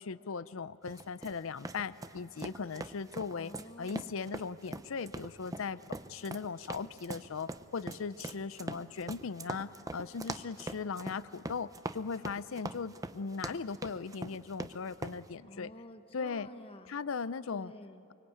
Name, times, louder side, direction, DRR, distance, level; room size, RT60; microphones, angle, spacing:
voice 1, 0.0-3.5 3.8-15.7 16.1-16.5 16.9-17.7, left 5 dB, 65° left, 16 dB, 0.5 m, -38 dB
sound 1, 0.9-15.2, right 2 dB, 15° right, 0.6 m, -42 dB
voice 2, 3.4-4.4 15.5-16.9 17.5-18.1, left 1 dB, 25° left, 8 dB, 1.0 m, -50 dB
24.5 x 24.0 x 9.0 m, 2.8 s
head